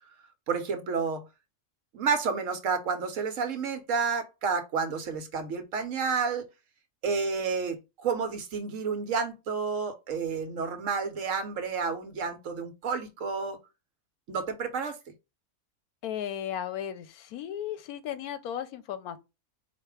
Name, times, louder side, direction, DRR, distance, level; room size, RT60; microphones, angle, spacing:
voice 1, 0.5-1.2 1.9-6.5 7.0-13.6 14.3-15.0, right 5 dB, 65° right, 1.1 m, -30 dB
voice 2, 16.0-19.2, left 10 dB, 85° left, 1.1 m, -35 dB
4.2 x 2.5 x 4.7 m
omnidirectional pair, 1.5 m